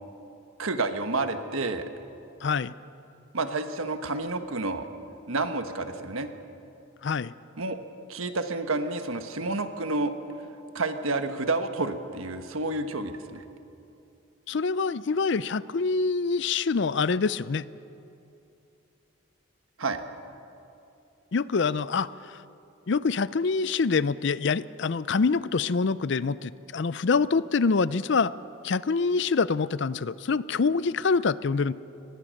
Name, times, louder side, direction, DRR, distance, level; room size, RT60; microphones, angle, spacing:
voice 1, 0.6-1.8 3.3-4.9 5.3-6.3 7.6-7.8 8.1-10.1 10.7-13.4 19.8-20.0, right 3 dB, 85° right, 8 dB, 1.4 m, -29 dB
voice 2, 2.4-2.7 7.0-7.3 14.5-17.6 21.3-22.4 22.9-28.3 28.6-31.7, left 4 dB, 55° left, 18 dB, 0.5 m, -25 dB
24.0 x 19.5 x 6.5 m, 2.8 s
head